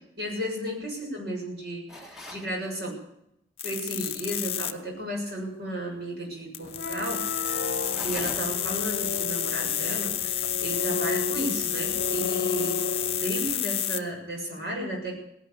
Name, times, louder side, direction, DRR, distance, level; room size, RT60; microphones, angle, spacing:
voice 1, 0.2-3.0 3.6-7.2 8.0-15.2, right 1 dB, 65° right, 0 dB, 6.9 m, -34 dB
sound 1, 1.9-2.5 7.8-8.7, left 1 dB, 5° right, 1.5 m, -41 dB
sound 2, 3.6-4.7 6.5-14.0, left 11 dB, 35° left, 0.9 m, -30 dB
sound 3, 6.6-13.6, left 3 dB, 65° left, 0.8 m, -34 dB
18.0 x 11.5 x 6.9 m, 0.77 s
head